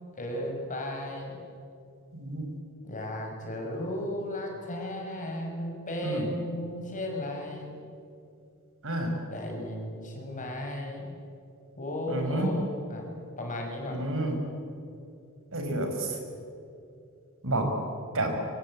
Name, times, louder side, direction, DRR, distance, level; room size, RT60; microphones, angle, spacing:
voice 1, 0.2-1.4 2.8-7.7 9.3-11.1 11.8-13.1 13.4-14.1, left 1 dB, 35° left, 1 dB, 6.0 m, -35 dB
voice 2, 2.1-2.5 6.0-6.3 8.8-9.1 12.1-12.5 13.9-14.4 15.5-16.2 17.4-17.7 18.1-18.4, right 2 dB, 65° right, 4 dB, 5.2 m, -29 dB
26.5 x 24.0 x 8.7 m, 2.5 s
head